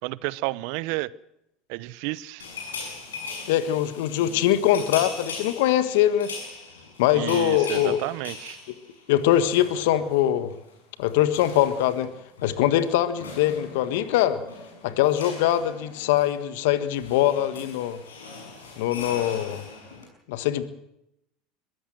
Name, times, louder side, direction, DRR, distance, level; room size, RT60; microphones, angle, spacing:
voice 1, 0.0-1.1 1.7-2.5 7.1-8.6, right 20 dB, 65° right, 20 dB, 0.7 m, -31 dB
sound 1, 2.4-10.3 10.5-10.7 11.0-20.1, left 4 dB, 85° left, 6.2 m, -40 dB
voice 2, 3.5-6.3 7.0-8.0 9.1-10.5 11.0-12.1 12.4-14.4 14.8-18.0 18.8-19.6 20.3-20.6, left 12 dB, 70° left, 12 dB, 1.5 m, -22 dB
22.5 x 15.0 x 7.8 m, 0.84 s
hypercardioid pair, 80°, 0 cm